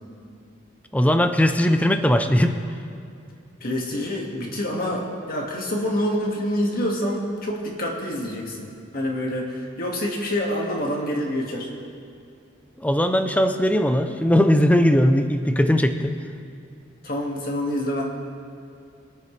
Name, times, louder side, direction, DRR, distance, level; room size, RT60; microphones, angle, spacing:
voice 1, 0.9-2.6 12.8-16.1, equal, 5° left, 8 dB, 0.6 m, -19 dB
voice 2, 3.6-5.0 5.3-8.7 8.9-11.7 17.0-18.0, left 1 dB, 45° left, -1 dB, 2.0 m, -26 dB
25.0 x 9.0 x 3.3 m, 2.4 s
head